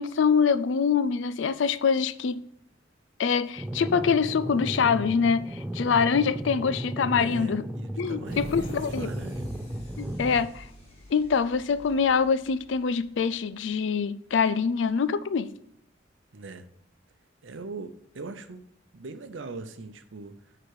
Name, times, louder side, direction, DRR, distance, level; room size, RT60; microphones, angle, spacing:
voice 1, 0.0-2.4 3.2-7.6 8.0-9.1 10.0-10.7 11.1-15.5, left 6 dB, 70° left, 0.4 m, -25 dB
sound 1, 3.6-10.5, right 1 dB, 10° right, 0.4 m, -35 dB
voice 2, 7.2-9.5 16.3-16.7 17.4-18.6 18.9-20.6, right 3 dB, 75° right, 0.7 m, -41 dB
sound 2, 8.3-13.8, equal, 35° left, 2.6 m, -46 dB
9.2 x 3.9 x 4.8 m
head